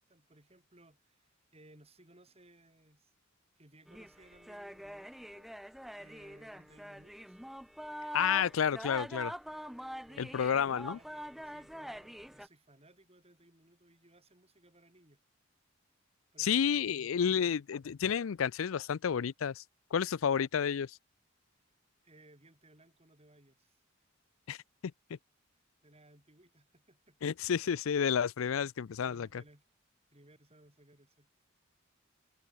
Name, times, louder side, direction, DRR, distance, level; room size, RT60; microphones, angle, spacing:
voice 1, 0.0-3.1 3.6-5.5 5.9-7.4 10.0-15.2 16.3-17.3 22.0-23.8 25.8-27.2 28.0-28.1 29.0-29.6 30.1-31.3, right 1 dB, 30° right, 6.0 m, -61 dB
sound 1, 3.9-12.5, equal, ahead, 0.5 m, -44 dB
voice 2, 8.1-9.3 10.2-11.0 16.4-19.6 19.9-21.0 24.5-24.6 27.2-29.3, left 7 dB, 80° left, 0.4 m, -30 dB
head